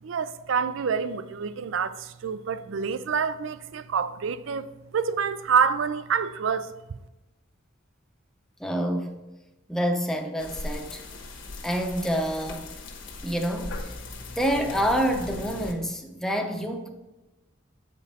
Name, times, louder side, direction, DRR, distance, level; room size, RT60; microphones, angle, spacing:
voice 1, 0.0-6.7, right 6 dB, 70° right, 0.4 m, -27 dB
voice 2, 8.6-9.2 9.7-11.0 11.6-12.7 13.2-13.9 14.4-16.9, equal, 5° left, 0.7 m, -27 dB
sound 1, 10.4-15.7, left 2 dB, 70° left, 1.2 m, -38 dB
8.2 x 5.3 x 4.1 m
head